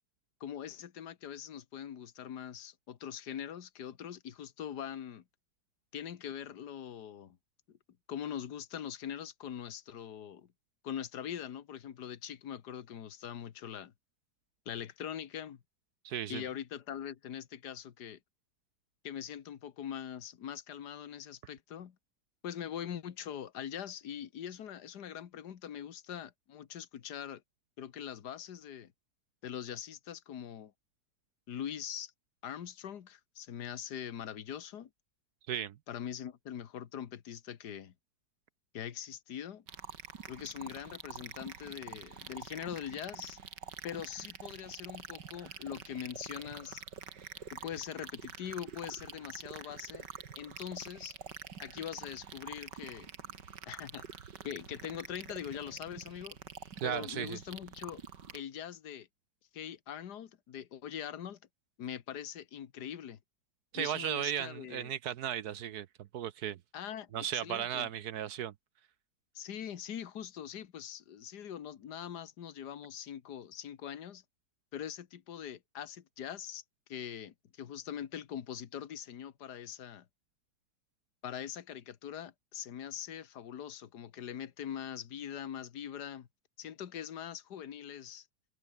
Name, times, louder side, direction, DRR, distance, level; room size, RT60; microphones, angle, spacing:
voice 1, 0.4-5.2 5.9-7.4 7.7-7.8 8.1-10.5 10.8-13.9 14.7-15.6 16.3-18.2 19.0-22.0 22.4-27.4 27.8-28.9 29.4-30.7 31.5-32.1 32.4-34.9 35.9-37.9 38.7-39.6 40.3-43.4 43.8-46.8 47.5-50.1 50.4-51.1 51.6-53.1 53.7-54.1 54.4-56.4 56.8-58.0 58.3-59.1 59.5-61.4 61.8-63.2 63.7-64.9 66.7-67.9 69.4-74.2 74.7-76.6 76.9-80.1 81.2-86.3 86.6-88.3, left 9 dB, 70° left, 1.8 m, -42 dB
voice 2, 16.0-16.4 35.5-35.8 56.8-57.4 63.7-65.9 66.1-66.6 67.1-68.5, right 10 dB, 70° right, 1.2 m, -35 dB
sound 1, 39.7-58.4, right 6 dB, 85° right, 2.6 m, -47 dB
omnidirectional pair, 1.8 m